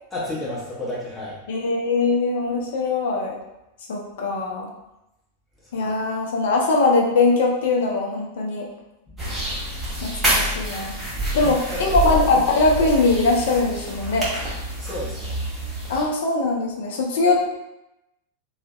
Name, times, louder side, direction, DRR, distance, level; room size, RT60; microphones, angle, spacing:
voice 1, 0.1-1.4 5.8-5.9 9.1-9.2 11.3-12.0 14.8-15.4, left 1 dB, 15° left, -7 dB, 0.9 m, -32 dB
voice 2, 1.5-3.4 3.9-4.7 5.7-8.7 10.0-10.9 11.3-14.2 15.9-17.5, left 3 dB, 55° left, 0 dB, 0.5 m, -21 dB
sound 1, 9.2-16.0, equal, 10° right, 1.0 m, -27 dB
2.5 x 2.0 x 2.5 m, 0.91 s
figure-of-eight pair, 90°, 0 cm